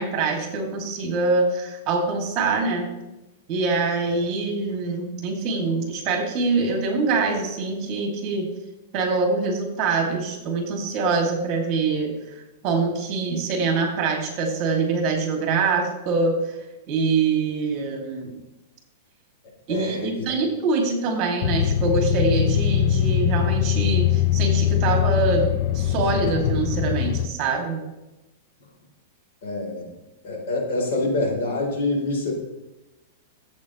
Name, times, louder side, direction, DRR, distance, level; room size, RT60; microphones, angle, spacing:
voice 1, 0.0-2.9 3.5-8.5 8.9-16.4 16.9-18.4 19.7-27.8, right 4 dB, 35° right, 2 dB, 2.6 m, -24 dB
voice 2, 19.7-20.2 29.4-29.9 30.2-32.3, left 2 dB, 65° left, 0 dB, 3.7 m, -26 dB
sound 1, 21.4-27.3, left 11 dB, 45° left, 0.5 m, -22 dB
13.5 x 8.2 x 3.2 m, 0.99 s
supercardioid pair, 150°, 0 cm